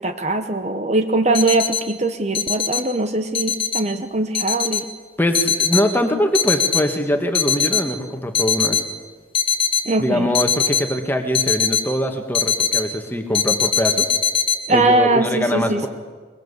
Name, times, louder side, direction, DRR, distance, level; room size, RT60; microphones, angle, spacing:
voice 1, 0.0-4.9 9.9-10.3 14.7-15.9, right 2 dB, 35° right, 8 dB, 0.9 m, -21 dB
sound 1, 1.3-1.8 2.3-2.8 3.3-3.8 4.3-4.8 5.3-5.8 6.3-6.8 7.3-7.8 8.3-8.8 9.3-9.8 10.3-10.8 11.3-11.8 12.3-12.8 13.3-14.5, left 7 dB, 30° left, 1.4 m, -20 dB
voice 2, 5.2-8.8 10.0-14.1 14.7-15.9, equal, 10° left, 5 dB, 1.7 m, -22 dB
22.5 x 21.5 x 8.2 m, 1.5 s
head